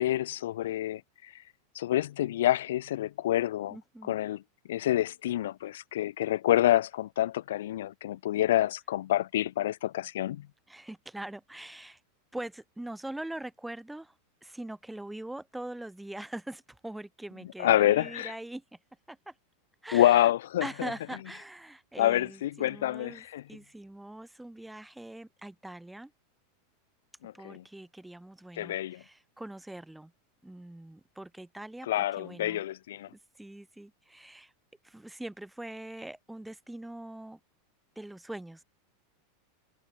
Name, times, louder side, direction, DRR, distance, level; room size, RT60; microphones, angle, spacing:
voice 1, 0.0-1.3 1.7-3.8 4.1-4.4 4.7-10.4 17.6-18.3 19.9-20.7 22.0-23.4 27.2-27.6 28.6-29.0 31.9-33.1, left 13 dB, 85° left, 1.4 m, -27 dB
voice 2, 3.7-4.1 10.7-12.0 12.3-14.1 14.4-18.6 19.1-19.3 19.8-20.3 20.6-26.1 27.3-30.1 30.4-31.9 32.1-32.7 33.4-34.5 34.8-37.4 38.0-38.6, right 1 dB, 5° right, 4.6 m, -42 dB
supercardioid pair, 175°, 0 cm